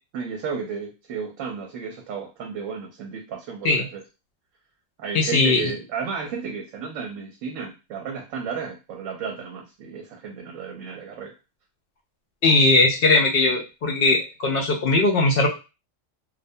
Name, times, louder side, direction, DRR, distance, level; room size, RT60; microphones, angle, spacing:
voice 1, 0.1-4.0 5.0-11.3, right 6 dB, 70° right, 1 dB, 0.9 m, -33 dB
voice 2, 5.1-5.7 12.4-15.5, left 2 dB, 65° left, 0 dB, 0.5 m, -19 dB
2.4 x 2.1 x 2.6 m, 0.29 s
omnidirectional pair, 1.4 m